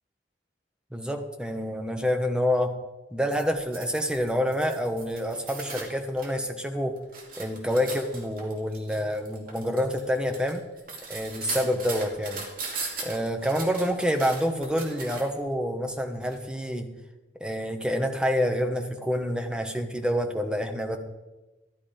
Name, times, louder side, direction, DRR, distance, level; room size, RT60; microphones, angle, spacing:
voice 1, 0.9-2.7 3.1-7.0 7.4-10.6 11.1-12.4 13.0-16.9 17.4-21.0, equal, 5° right, 5 dB, 1.1 m, -27 dB
sound 1, 3.3-6.3 6.7-15.4 16.2-16.4, right 4 dB, 50° right, 2.4 m, -39 dB
13.0 x 11.0 x 5.2 m, 1.1 s
head